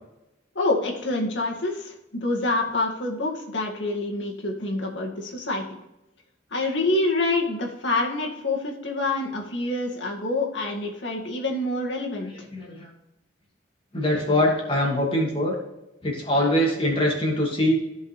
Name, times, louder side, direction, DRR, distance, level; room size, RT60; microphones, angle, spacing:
voice 1, 0.6-5.8 6.5-12.5, left 2 dB, 80° left, 0 dB, 2.0 m, -27 dB
voice 2, 12.5-12.9 13.9-15.6 16.0-17.8, left 1 dB, 30° left, -2 dB, 2.6 m, -23 dB
15.0 x 5.4 x 3.3 m, 0.95 s
head